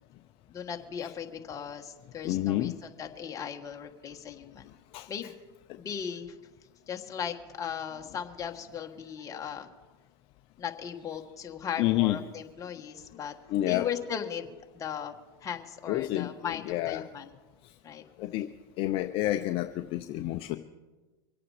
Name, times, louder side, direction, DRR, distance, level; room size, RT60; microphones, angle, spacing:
voice 1, 0.5-2.7 3.0-4.7 5.1-5.3 5.8-6.3 6.9-9.7 10.6-13.3 13.6-17.3 17.8-18.1, left 8 dB, 25° left, 3 dB, 1.5 m, -37 dB
voice 2, 2.2-2.7 4.9-5.1 11.8-12.2 13.5-13.9 15.9-17.0 18.2-18.5 18.8-20.6, left 15 dB, 50° left, 8 dB, 0.6 m, -29 dB
24.5 x 8.6 x 5.0 m, 1.2 s
supercardioid pair, 120°, 12 cm